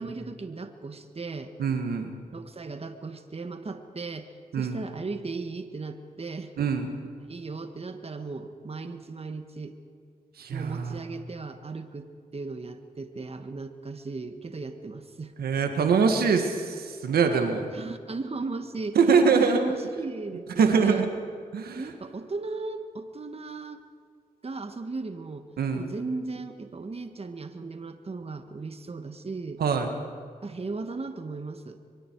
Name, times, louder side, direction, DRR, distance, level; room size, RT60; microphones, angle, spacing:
voice 1, 0.0-1.5 2.3-6.5 7.3-9.7 10.5-15.3 17.7-21.0 21.7-23.8 24.4-25.5 25.7-29.6 30.4-31.8, right 3 dB, 40° right, 8 dB, 1.6 m, -37 dB
voice 2, 1.6-2.1 4.5-4.8 6.6-6.9 10.4-11.0 15.4-17.7 19.0-19.6 20.6-21.1 21.5-21.8 25.6-25.9 29.6-29.9, right 5 dB, 85° right, 5 dB, 1.7 m, -23 dB
24.0 x 23.5 x 4.7 m, 2.1 s
cardioid pair, 50°, 16 cm